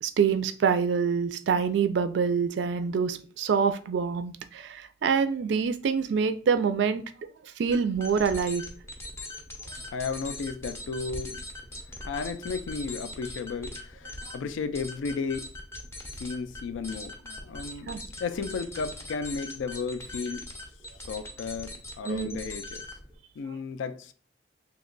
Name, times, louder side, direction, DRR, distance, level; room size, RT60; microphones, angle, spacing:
voice 1, 0.0-7.0 7.6-8.6 17.9-18.0 22.1-22.3, right 6 dB, 65° right, 0.3 m, -26 dB
sound 1, 7.7-23.1, left 2 dB, 15° left, 0.5 m, -41 dB
voice 2, 9.9-11.4 12.0-15.5 16.2-17.9 18.2-20.5 21.1-22.8 23.4-24.1, left 5 dB, 90° left, 0.3 m, -34 dB
2.8 x 2.2 x 3.7 m
head